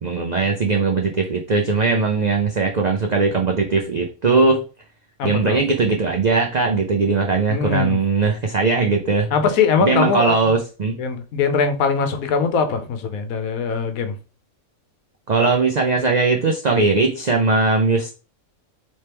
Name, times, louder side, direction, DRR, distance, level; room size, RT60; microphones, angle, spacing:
voice 1, 0.0-4.6 5.2-9.3 9.8-11.0 15.3-18.1, right 4 dB, 70° right, 0.4 m, -19 dB
voice 2, 5.2-5.6 7.5-8.0 9.3-10.5 11.0-14.2, left 5 dB, 85° left, 1.2 m, -21 dB
4.3 x 3.2 x 3.4 m
omnidirectional pair, 1.4 m